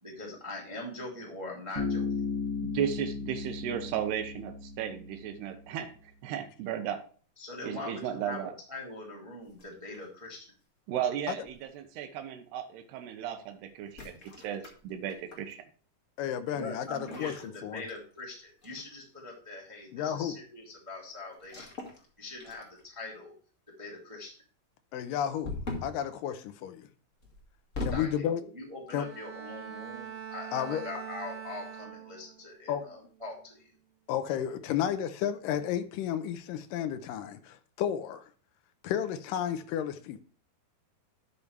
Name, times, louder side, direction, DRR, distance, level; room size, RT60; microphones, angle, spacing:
voice 1, 0.0-2.1 7.4-10.4 16.5-21.7 22.2-23.3 23.8-24.4 27.9-33.6, left 2 dB, 10° right, 1.6 m, -42 dB
Bass guitar, 1.8-5.4, left 4 dB, 10° left, 3.7 m, -35 dB
voice 2, 2.6-5.9 6.2-7.0 7.6-8.5 10.9-14.1 14.4-15.6, right 9 dB, 90° right, 3.1 m, -35 dB
sound 1, 9.5-10.3 11.5-11.8 13.8-15.5 16.9-18.3 18.6-18.9 21.4-22.1 22.4-23.0 25.4-26.0 27.2-28.2, left 2 dB, 35° left, 1.3 m, -40 dB
voice 3, 16.2-17.3 17.6-17.8 19.9-20.4 24.9-26.9 27.8-28.4 28.9-29.1 30.5-30.8 32.7-32.8 34.1-38.3 38.8-40.2, left 9 dB, 80° left, 1.9 m, -32 dB
Bowed string instrument, 28.9-32.5 32.9-33.3, right 8 dB, 70° right, 3.3 m, -43 dB
12.0 x 6.9 x 3.2 m
omnidirectional pair, 4.7 m